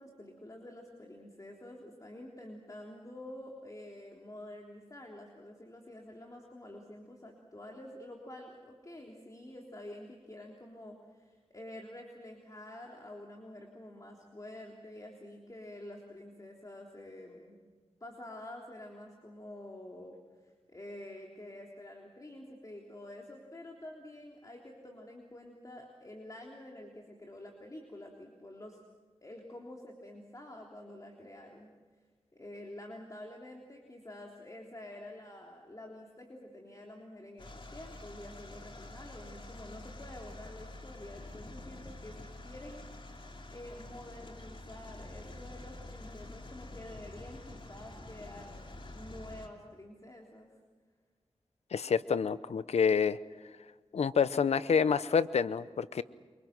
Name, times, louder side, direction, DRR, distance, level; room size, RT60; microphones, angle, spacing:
voice 1, 0.0-17.6 18.0-20.2 20.4-28.8 29.2-31.7 32.3-42.9 43.5-50.5, left 1 dB, 35° left, 0 dB, 3.6 m, -48 dB
sound 1, 37.4-49.5, left 2 dB, 50° left, 3.0 m, -47 dB
voice 2, 51.7-53.2 53.9-56.0, left 6 dB, 85° left, 15 dB, 0.7 m, -28 dB
28.0 x 24.5 x 6.1 m, 1.4 s
cardioid pair, 50°, 11 cm